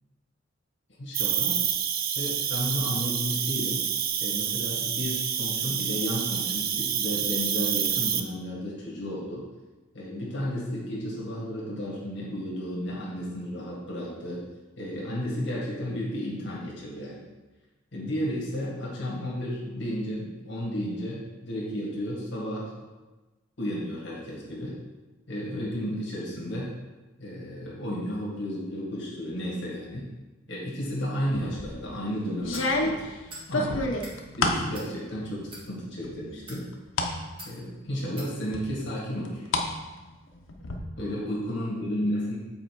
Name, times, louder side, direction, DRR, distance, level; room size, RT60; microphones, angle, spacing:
voice 1, 1.0-1.6 2.1-3.8 4.2-9.4 9.9-14.5 14.8-17.2 17.9-22.7 23.6-24.8 25.3-26.7 27.2-30.1 30.5-33.0 33.5-36.7 37.4-39.5 40.6-40.7 41.0-42.4, equal, 65° left, -5 dB, 1.9 m, -33 dB
Cricket, 1.1-8.2, right 8 dB, 50° right, 0.5 m, -28 dB
Jeanne-porte-monnaie, 31.3-31.8 32.4-34.7 35.1-35.7 36.0-37.1 37.6-37.7 38.5-39.7 40.0-40.8, left 2 dB, 85° left, 0.9 m, -29 dB
sound 1, 32.5-32.7 33.3-33.5 33.9-34.2 34.7-34.9 35.4-35.6 36.3-36.6 37.4-37.5 38.2-38.3, right 1 dB, 25° right, 1.7 m, -43 dB
7.8 x 4.4 x 4.7 m, 1.2 s
head